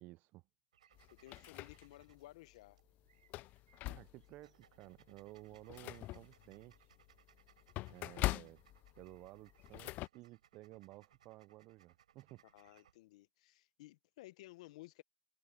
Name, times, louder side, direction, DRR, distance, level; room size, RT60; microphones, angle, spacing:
voice 1, 0.0-0.4 3.9-6.9 7.9-8.6 9.0-12.4, right 19 dB, 55° right, 0.5 m, -55 dB
sound 1, 0.7-13.0, right 10 dB, 85° right, 7.9 m, -70 dB
sound 2, 0.9-2.2 2.7-2.8 3.2-4.4 4.9-5.0 5.4-10.1, left 19 dB, 50° left, 0.4 m, -43 dB
voice 2, 1.1-2.8 12.5-15.0, left 18 dB, 70° left, 1.0 m, -56 dB
hypercardioid pair, 90°, 4 cm